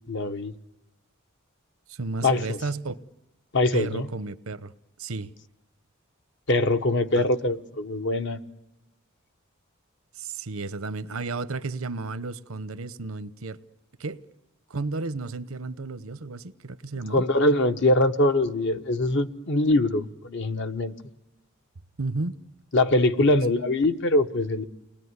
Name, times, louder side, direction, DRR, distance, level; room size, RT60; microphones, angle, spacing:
voice 1, 0.1-0.5 2.2-2.6 3.5-4.1 6.5-8.4 17.1-20.9 22.7-24.7, left 2 dB, 60° left, 1.1 m, -23 dB
voice 2, 1.9-3.0 3.7-4.7 5.0-5.3 7.2-7.3 10.1-13.6 14.0-14.2 14.7-17.2 22.0-22.4, right 3 dB, 85° right, 0.9 m, -33 dB
29.5 x 20.0 x 9.6 m
head